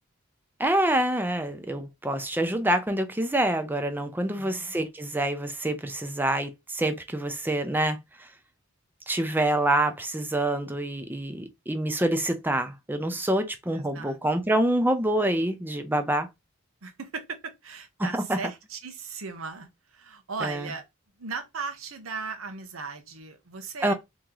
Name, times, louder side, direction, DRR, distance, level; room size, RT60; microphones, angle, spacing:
voice 1, 0.6-8.3 9.1-16.3 18.0-18.4 20.4-20.7 23.8-23.9, right 1 dB, 10° right, 0.6 m, -26 dB
voice 2, 4.2-4.7 13.7-14.2 16.8-20.8 21.2-23.9, right 4 dB, 85° right, 0.9 m, -37 dB
3.0 x 2.8 x 3.8 m
head